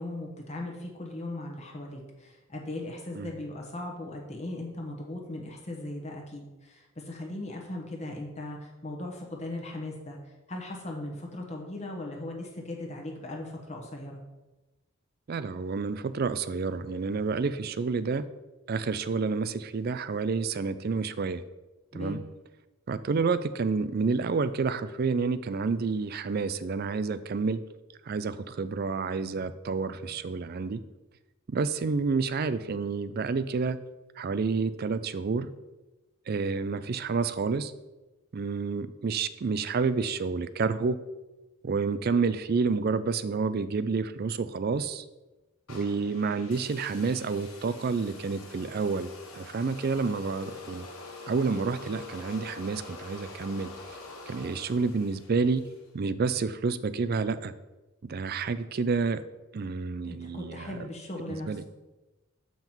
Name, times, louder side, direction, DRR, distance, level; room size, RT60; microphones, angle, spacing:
voice 1, 0.0-14.2 21.9-22.2 60.0-61.6, left 1 dB, 30° left, 0 dB, 1.1 m, -38 dB
voice 2, 15.3-18.3 18.7-21.4 21.9-22.2 22.9-27.6 28.1-30.8 31.5-33.8 34.2-35.5 36.3-37.7 38.3-41.0 41.6-45.0 45.7-50.9 51.3-54.0 54.3-55.6 55.9-57.5 58.0-59.2 59.5-60.8 61.3-61.6, right 4 dB, 45° right, 14 dB, 0.4 m, -29 dB
sound 1, 45.7-55.9, left 3 dB, 85° left, 1.5 m, -45 dB
7.2 x 5.8 x 4.5 m, 1.1 s
head